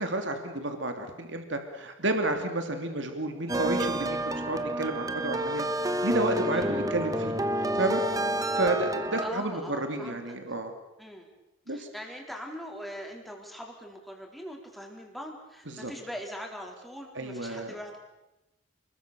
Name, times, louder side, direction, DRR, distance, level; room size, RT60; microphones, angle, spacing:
voice 1, 0.0-5.7 6.0-8.0 8.5-10.7 11.7-11.9 15.7-15.9 17.1-17.7, right 2 dB, 65° right, 6 dB, 3.0 m, -31 dB
sound 1, 3.5-9.3, right 1 dB, 15° right, 1.2 m, -29 dB
voice 2, 6.5-6.9 9.2-10.3 11.0-11.3 11.7-18.0, equal, ahead, 1 dB, 4.1 m, -41 dB
30.0 x 21.5 x 7.0 m, 0.94 s
head